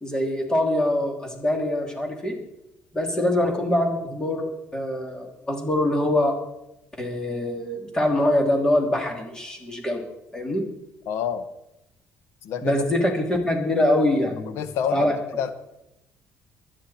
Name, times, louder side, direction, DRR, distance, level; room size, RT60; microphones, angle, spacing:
voice 1, 0.0-2.4 2.9-6.3 7.0-10.0 10.3-10.6 12.6-14.6 14.9-15.4, left 1 dB, 15° left, 2 dB, 3.0 m, -24 dB
voice 2, 11.1-11.4 12.4-12.8 14.6-15.1 15.4-15.5, left 8 dB, 80° left, 11 dB, 1.3 m, -27 dB
24.0 x 9.8 x 4.3 m, 0.87 s
cardioid pair, 135°, 4 cm